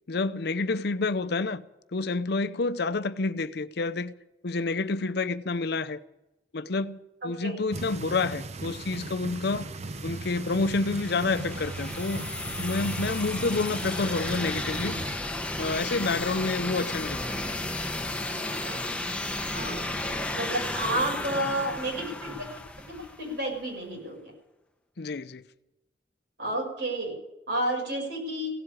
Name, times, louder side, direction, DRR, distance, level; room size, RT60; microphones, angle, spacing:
voice 1, 0.1-1.6 1.9-4.1 4.4-6.0 6.5-9.7 10.0-12.3 12.6-15.0 15.6-17.2 25.0-25.4, left 3 dB, 65° left, 0.7 m, -29 dB
voice 2, 7.2-7.5 18.6-18.8 19.5-22.5 22.9-24.3 26.4-27.1 27.5-28.5, right 1 dB, 70° right, 5.9 m, -31 dB
sound 1, 7.7-15.2, right 3 dB, 40° right, 0.7 m, -37 dB
sound 2, 9.7-23.5, left 2 dB, 5° left, 1.1 m, -34 dB
16.5 x 7.8 x 9.9 m
head